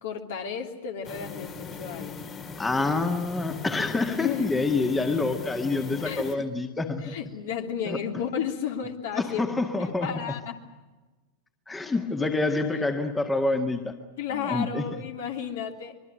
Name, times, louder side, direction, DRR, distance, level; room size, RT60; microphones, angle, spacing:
voice 1, 0.0-2.2 4.2-4.6 6.0-6.4 7.0-10.6 12.8-13.0 14.2-16.0, left 7 dB, 55° left, 3 dB, 3.0 m, -33 dB
sound 1, 1.0-6.4, left 5 dB, 30° left, 2.2 m, -40 dB
voice 2, 2.6-7.2 7.9-8.0 9.2-10.1 11.7-14.0 14.3-14.8, left 3 dB, 10° left, 6 dB, 1.9 m, -27 dB
25.0 x 23.0 x 7.8 m, 1.2 s
figure-of-eight pair, 90°, 0 cm